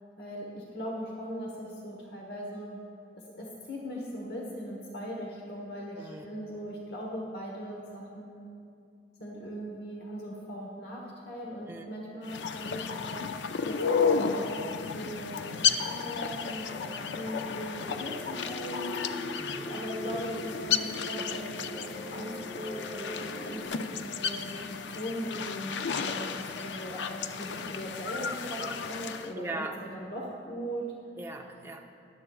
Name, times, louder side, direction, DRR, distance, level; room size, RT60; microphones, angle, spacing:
voice 1, 0.2-2.7 3.1-8.5 9.2-13.2 13.6-14.7 14.9-19.1 19.6-22.3 22.6-29.5 29.8-30.9, equal, 60° left, -2 dB, 1.1 m, -39 dB
voice 2, 5.9-6.3 11.7-12.4 19.3-19.6 29.4-29.8 31.2-31.8, right 2 dB, 15° right, 1 dB, 0.6 m, -40 dB
sound 1, 12.2-29.3, left 6 dB, 85° left, 0.4 m, -33 dB
sound 2, 16.4-23.7, left 1 dB, 5° left, 2.4 m, -42 dB
Piano, 19.9-25.2 26.1-26.2 26.7-26.8 27.6-27.7 28.7-28.8, equal, 75° right, 0.6 m, -52 dB
16.5 x 11.5 x 2.3 m, 2.5 s
head